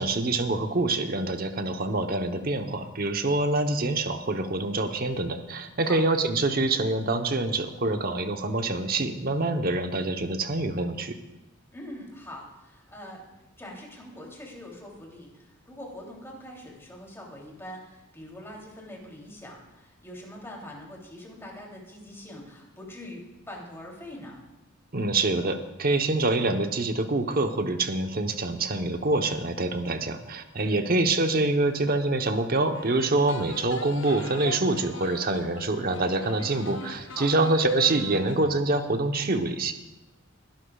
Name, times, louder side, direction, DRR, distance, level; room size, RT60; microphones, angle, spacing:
voice 1, 0.0-11.2 24.9-39.7, right 2 dB, 45° right, 6 dB, 1.0 m, -26 dB
voice 2, 11.7-13.3 13.6-24.4 30.6-30.8 37.1-37.3, left 1 dB, 15° left, -2 dB, 3.1 m, -43 dB
sound 1, 32.7-38.5, left 4 dB, 65° left, 0.9 m, -42 dB
21.5 x 12.0 x 2.4 m, 1.0 s
head